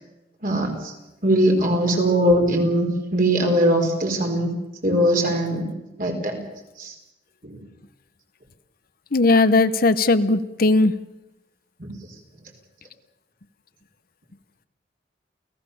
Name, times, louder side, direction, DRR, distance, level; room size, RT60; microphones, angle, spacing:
voice 1, 0.4-0.9 1.2-4.5 4.8-5.7 6.0-6.4 6.8-6.9 7.4-7.6 11.8-11.9, right 1 dB, 50° right, 2 dB, 4.6 m, -21 dB
voice 2, 9.1-10.9, left 3 dB, 50° left, 13 dB, 0.8 m, -18 dB
29.0 x 16.5 x 7.0 m, 0.96 s
head